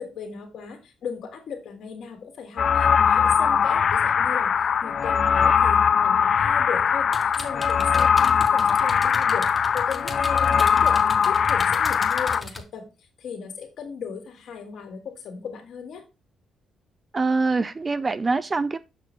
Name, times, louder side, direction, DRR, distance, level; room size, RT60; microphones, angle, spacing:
voice 1, 0.0-4.5 4.8-12.8 13.2-16.0, left 6 dB, 70° left, 2.1 m, -37 dB
sound 1, 2.6-12.4, left 7 dB, 55° left, 0.3 m, -21 dB
sound 2, 7.1-12.6, left 2 dB, 20° left, 1.3 m, -38 dB
voice 2, 17.1-18.8, right 3 dB, 30° right, 0.4 m, -24 dB
6.7 x 5.9 x 3.2 m
cardioid pair, 90°, 0 cm